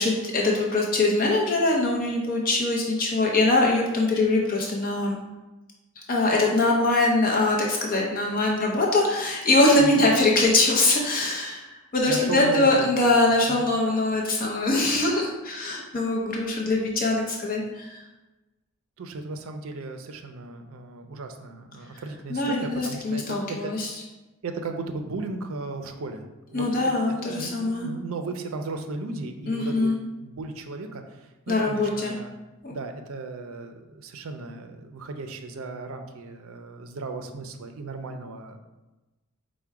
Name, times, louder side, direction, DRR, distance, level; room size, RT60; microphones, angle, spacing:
voice 1, 0.0-5.2 6.1-18.0 22.3-23.9 26.5-27.9 29.5-30.0 31.5-32.1 32.6-32.7, left 2 dB, 40° left, -1 dB, 0.6 m, -23 dB
voice 2, 12.1-13.2 13.5-13.7 19.0-23.8 24.4-29.9 30.2-32.3 32.7-38.6, right 3 dB, 70° right, 6 dB, 0.5 m, -36 dB
4.6 x 2.1 x 4.6 m, 1.1 s
head